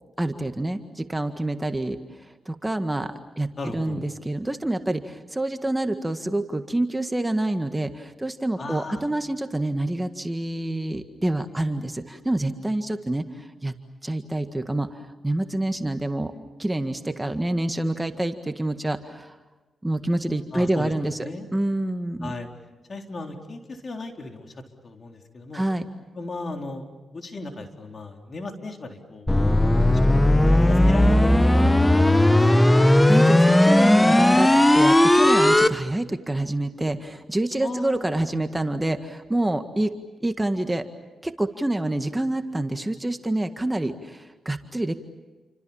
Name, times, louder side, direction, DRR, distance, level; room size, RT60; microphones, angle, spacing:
voice 1, 0.2-13.7 14.0-16.3 16.6-19.4 19.8-22.3 25.5-25.8 33.1-39.9 40.2-40.9 41.2-44.9, right 1 dB, 15° right, 7 dB, 1.8 m, -27 dB
voice 2, 3.6-4.0 8.6-9.1 20.5-20.9 21.2-21.5 22.2-22.5 22.9-24.5 24.8-25.6 26.1-26.8 27.1-29.3 29.8-31.7 32.1-32.7 37.6-38.0, left 3 dB, 50° left, 3 dB, 4.0 m, -36 dB
sound 1, 29.3-35.7, left 1 dB, 15° left, 1.2 m, -16 dB
30.0 x 25.5 x 7.2 m, 1.2 s
cardioid pair, 60°, 0 cm